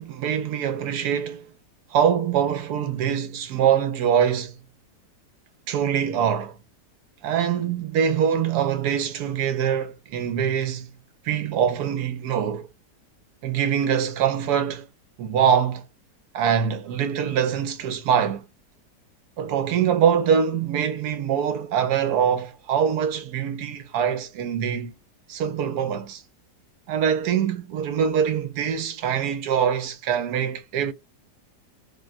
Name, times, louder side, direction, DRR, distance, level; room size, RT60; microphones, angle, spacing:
voice 1, 0.0-1.5 1.9-4.6 5.7-6.6 7.2-10.9 11.2-12.7 13.4-14.9 15.2-15.8 16.3-18.5 19.4-24.9 25.3-26.2 26.9-30.9, right 8 dB, 75° right, 1.1 m, -23 dB
3.3 x 2.3 x 2.4 m
omnidirectional pair, 1.8 m